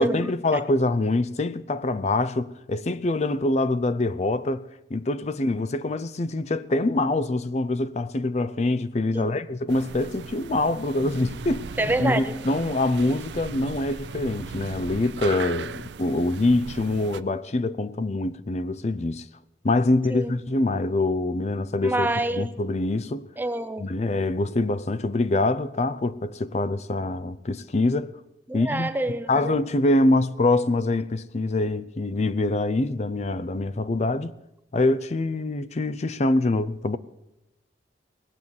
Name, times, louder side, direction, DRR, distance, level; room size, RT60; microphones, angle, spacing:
voice 1, 0.0-11.7 12.0-19.3 19.6-22.1 22.3-23.3 23.8-28.1 28.5-28.9 29.3-34.3 34.7-37.0, left 2 dB, 40° left, 0.5 m, -25 dB
sound 1, 9.7-17.2, right 5 dB, 80° right, 0.5 m, -38 dB
voice 2, 11.8-12.3 20.1-20.3 21.8-22.5 23.4-23.9 28.5-29.5, right 1 dB, 10° right, 0.5 m, -27 dB
19.0 x 8.0 x 7.0 m
head